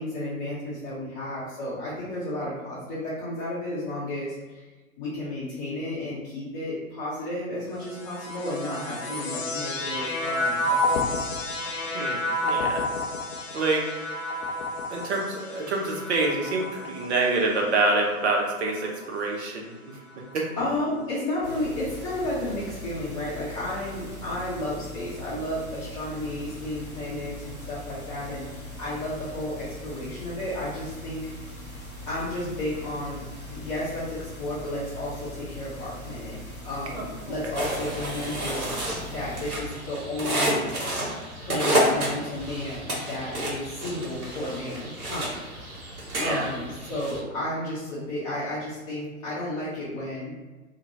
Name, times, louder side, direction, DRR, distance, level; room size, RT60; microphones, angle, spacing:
voice 1, 0.0-4.6 5.0-11.3 20.6-31.3 32.1-33.2 33.5-36.4 36.6-38.8 39.1-40.7 41.4-45.4 46.2-50.3, left 1 dB, 25° left, -11 dB, 0.7 m, -32 dB
sound 1, 7.7-19.2 20.0-20.7, left 1 dB, 65° left, 0.6 m, -31 dB
voice 2, 11.9-12.8 13.5-13.9 14.9-20.0 20.3-20.5 36.9-37.0 46.2-46.5, right 3 dB, 50° right, 0 dB, 0.7 m, -26 dB
sound 2, 21.4-39.5, left 1 dB, 5° left, 1.1 m, -41 dB
sound 3, 37.5-47.2, right 1 dB, 80° right, 1.0 m, -30 dB
2.7 x 2.1 x 2.7 m, 1.2 s
figure-of-eight pair, 115°, 43 cm